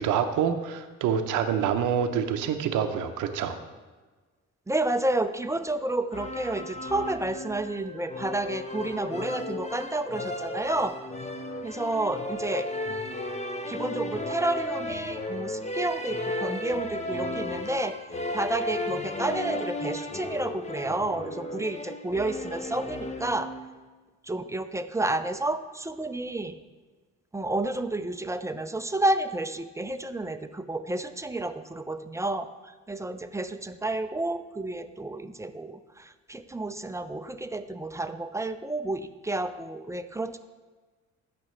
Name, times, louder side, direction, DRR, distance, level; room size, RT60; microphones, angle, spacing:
voice 1, 0.0-3.6, right 8 dB, 85° right, 7 dB, 0.7 m, -26 dB
voice 2, 4.7-11.0 11.6-12.7 13.7-18.0 18.3-23.5 24.2-26.6 27.3-40.4, right 2 dB, 10° right, 10 dB, 0.5 m, -30 dB
sound 1, 6.1-23.8, left 2 dB, 20° left, 0.9 m, -34 dB
15.0 x 6.0 x 3.2 m, 1.3 s
cardioid pair, 90°, 30 cm